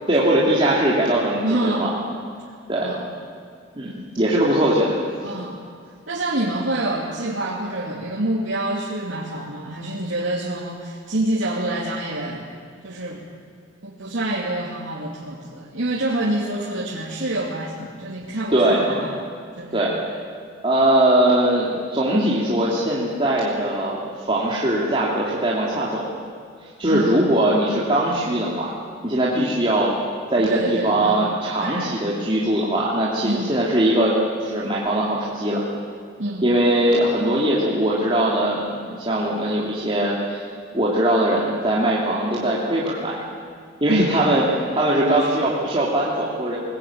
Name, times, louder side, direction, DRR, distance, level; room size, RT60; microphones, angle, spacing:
voice 1, 0.1-2.0 2.7-2.9 3.7-5.0 18.5-19.0 19.7-19.9 20.6-26.0 26.8-28.7 29.0-29.9 30.3-34.1 34.4-35.6 36.4-40.4 40.7-43.2 43.8-44.4 44.7-46.6, right 1 dB, 30° right, -6 dB, 3.0 m, -21 dB
voice 2, 1.4-1.9 2.8-3.1 5.2-5.6 6.1-12.5 12.8-13.3 13.8-19.3 19.6-19.9 26.9-27.2 30.4-31.3 31.6-31.9 33.2-33.6 36.2-36.5 43.9-44.2 45.1-45.3, right 1 dB, 90° right, -5 dB, 2.8 m, -27 dB
23.0 x 20.0 x 8.8 m, 2.1 s
head